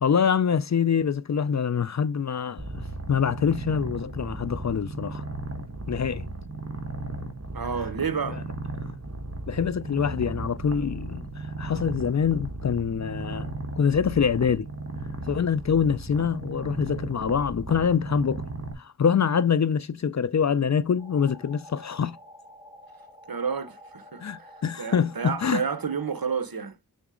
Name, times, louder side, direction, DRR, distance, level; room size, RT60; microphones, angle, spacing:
voice 1, 0.0-5.2 5.9-6.3 8.3-8.4 9.5-14.7 15.3-18.4 18.8-22.2 24.2-25.6, left 7 dB, 45° left, 0.4 m, -25 dB
Purr, 2.6-18.7, right 2 dB, 40° right, 1.5 m, -36 dB
voice 2, 7.5-8.4 23.3-24.5 24.8-26.8, right 6 dB, 65° right, 0.9 m, -30 dB
sound 1, 21.0-26.2, left 1 dB, 15° right, 3.8 m, -49 dB
7.0 x 4.0 x 3.7 m
wide cardioid pair, 45°, 38 cm